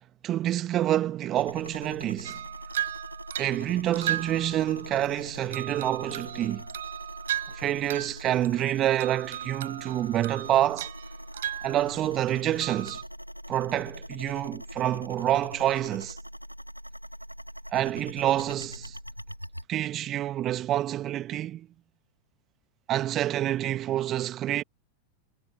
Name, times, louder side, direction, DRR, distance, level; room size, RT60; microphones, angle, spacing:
voice 1, 0.2-2.4 3.4-6.6 7.6-10.9 11.6-13.0 13.5-16.2 17.7-19.0 19.7-21.7 22.9-24.6, right 12 dB, 30° right, 1.7 m, -27 dB
sound 1, 1.4-19.6, equal, 90° right, 3.7 m, -43 dB
sound 2, 2.2-5.1 5.5-8.2 8.4-8.7 9.0-12.3 12.6-13.0, right 11 dB, 60° right, 7.4 m, -36 dB
figure-of-eight pair, 90°, 0 cm